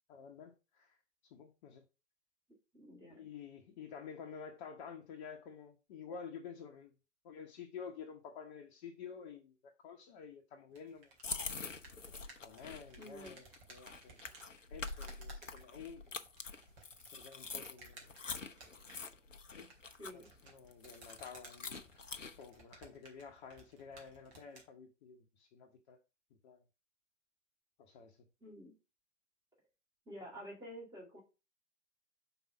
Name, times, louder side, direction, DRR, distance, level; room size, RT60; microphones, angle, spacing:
voice 1, 0.1-1.0 1.3-1.8 3.1-6.9 7.2-9.5 9.8-11.1 12.4-14.3 14.7-16.2 17.0-18.2 19.6-19.7 20.1-26.0 26.4-26.6 27.8-28.3, left 6 dB, 40° left, 1.1 m, -51 dB
voice 2, 2.7-3.3 13.0-13.4 20.0-20.3 28.4-28.7 30.0-31.2, equal, 10° right, 3.3 m, -50 dB
sound 1, 10.7-24.7, right 3 dB, 35° right, 2.3 m, -59 dB
sound 2, 11.2-22.5, left 4 dB, 85° left, 0.7 m, -46 dB
5.5 x 4.1 x 5.8 m
figure-of-eight pair, 105°, 37 cm